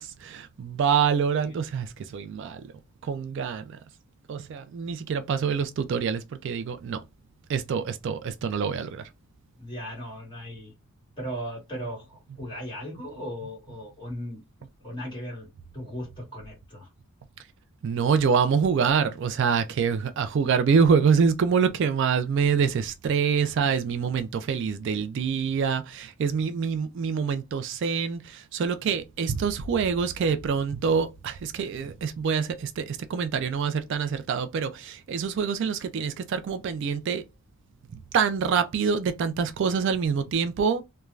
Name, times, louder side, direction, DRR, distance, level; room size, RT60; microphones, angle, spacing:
voice 1, 0.0-2.6 3.0-3.6 4.3-7.0 7.5-9.0 17.8-37.2 38.1-40.8, right 6 dB, 55° right, 0.3 m, -26 dB
voice 2, 9.6-10.7 11.2-14.4 14.8-15.5 15.7-16.9, equal, 20° left, 1.6 m, -37 dB
3.1 x 2.2 x 2.3 m
head